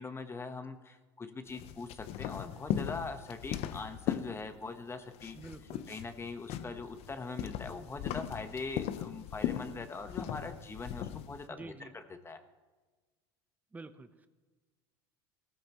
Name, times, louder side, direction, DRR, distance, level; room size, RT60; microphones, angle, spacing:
voice 1, 0.0-5.4 5.9-12.4, left 4 dB, 20° left, 8 dB, 1.1 m, -42 dB
sound 1, 1.5-4.8 5.1-11.4, left 11 dB, 55° left, 0.8 m, -38 dB
voice 2, 5.3-5.9 11.5-11.9 13.7-14.3, right 3 dB, 10° right, 10 dB, 0.8 m, -48 dB
17.5 x 14.0 x 3.0 m, 1.3 s
supercardioid pair, 105°, 13 cm